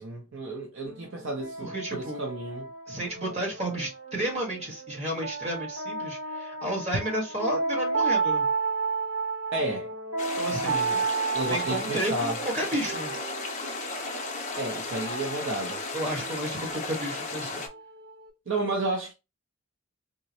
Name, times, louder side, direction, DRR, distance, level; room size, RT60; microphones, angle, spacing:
voice 1, 0.0-2.7 9.5-9.9 10.6-11.1 11.3-12.4 14.6-15.8 18.5-19.1, right 2 dB, 55° right, 0.6 m, -32 dB
sound 1, 0.8-18.3, right 4 dB, 80° right, 0.9 m, -33 dB
voice 2, 1.6-2.3 2.9-8.5 10.4-10.8 11.5-13.1 15.9-17.6, right 1 dB, 30° right, 1.3 m, -32 dB
sound 2, 10.2-17.7, left 3 dB, 30° left, 0.5 m, -35 dB
3.7 x 2.0 x 2.7 m
head